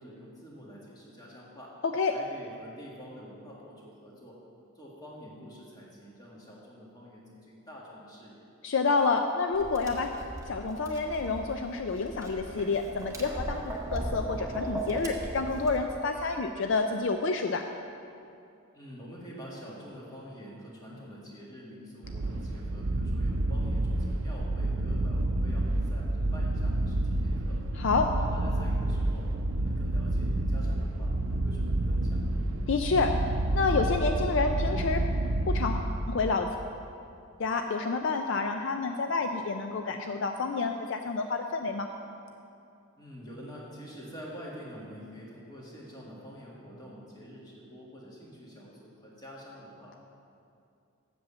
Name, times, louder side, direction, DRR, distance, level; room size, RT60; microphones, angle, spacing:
voice 1, 0.0-1.8 2.1-4.4 4.8-8.4 18.7-27.6 28.2-29.3 29.6-31.1 31.4-32.2 43.0-50.0, equal, 20° left, -4 dB, 1.7 m, -47 dB
voice 2, 1.8-2.1 8.6-10.1 10.4-13.6 13.9-17.6 27.8-28.1 32.7-33.2 33.5-35.0 35.5-36.5 37.4-41.9, left 4 dB, 55° left, 5 dB, 0.4 m, -28 dB
Tap, 9.5-15.8, right 1 dB, 15° right, 0.8 m, -37 dB
sound 1, 22.0-36.3, right 1 dB, 70° right, 0.6 m, -29 dB
7.8 x 7.0 x 7.3 m, 2.5 s
head